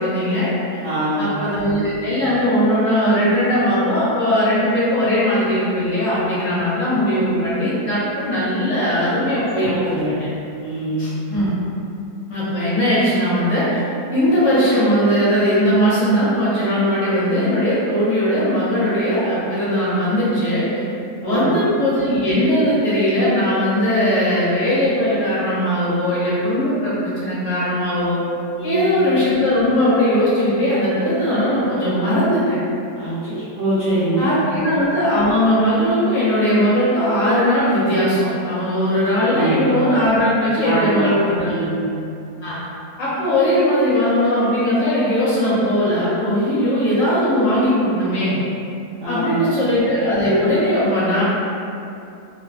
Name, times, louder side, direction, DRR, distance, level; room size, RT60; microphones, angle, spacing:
voice 1, 0.0-0.8 1.2-9.7 9.9-10.3 11.0-11.5 12.3-13.8 14.1-20.6 21.2-28.2 28.6-32.6 34.2-41.7 42.4-42.6 43.0-48.3 49.0-51.2, equal, 65° left, -9 dB, 1.0 m, -19 dB
voice 2, 0.8-1.3 9.5-10.1 10.6-11.0 21.2-21.5 28.6-28.9 33.0-34.5 39.3-39.6 40.6-41.0 41.4-41.9 49.0-49.5, right 1 dB, 60° right, -13 dB, 0.6 m, -23 dB
2.7 x 2.1 x 2.3 m, 2.6 s
omnidirectional pair, 1.7 m